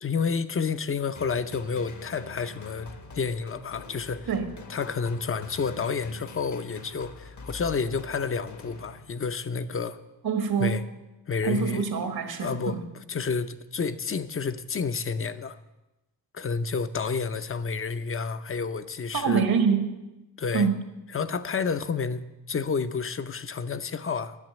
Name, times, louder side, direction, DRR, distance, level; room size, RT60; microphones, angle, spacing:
voice 1, 0.0-2.9 3.2-4.3 4.7-10.0 10.6-10.8 11.3-11.9 12.4-12.8 13.1-15.6 16.3-19.4 20.4-20.7 21.1-22.2 22.5-24.3, left 5 dB, 35° left, 0.6 m, -30 dB
sound 1, 1.2-9.5, left 4 dB, 50° left, 1.1 m, -45 dB
voice 2, 10.2-10.8 11.4-12.8 19.1-19.9 20.5-20.8, right 6 dB, 75° right, 1.5 m, -25 dB
11.0 x 7.4 x 9.0 m
wide cardioid pair, 140°, 37 cm